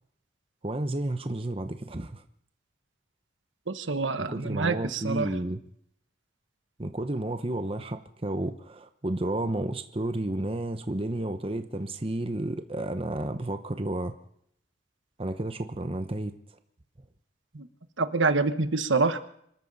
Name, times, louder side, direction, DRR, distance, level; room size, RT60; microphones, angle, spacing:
voice 1, 0.6-2.2 4.2-5.6 6.8-14.1 15.2-16.3, right 1 dB, 30° right, 8 dB, 0.9 m, -31 dB
voice 2, 3.7-5.3 17.5-17.7 18.0-19.2, right 3 dB, 75° right, 10 dB, 1.2 m, -26 dB
25.5 x 13.5 x 4.1 m, 0.69 s
head